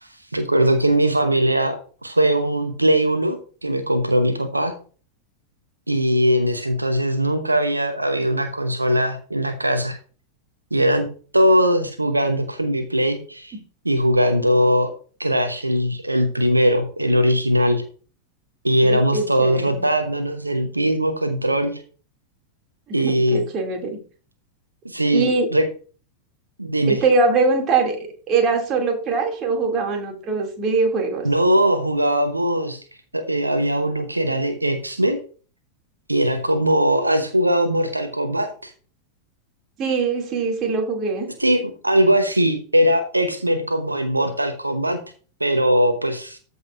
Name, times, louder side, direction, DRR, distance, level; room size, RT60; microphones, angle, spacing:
voice 1, 0.0-4.7 5.9-10.0 10.7-11.1 11.3-13.6 13.8-14.9 15.2-17.8 18.6-21.8 22.9-23.4 24.8-25.7 26.6-27.0 31.2-32.8 33.1-35.2 36.1-38.7 41.4-45.0 45.4-46.4, equal, 85° right, 7 dB, 0.9 m, -20 dB
voice 2, 18.8-19.8 22.9-24.0 25.1-25.5 26.9-31.3 39.8-41.3, right 4 dB, 30° right, 1 dB, 2.5 m, -22 dB
14.0 x 5.4 x 2.5 m, 0.39 s
figure-of-eight pair, 90°, 0 cm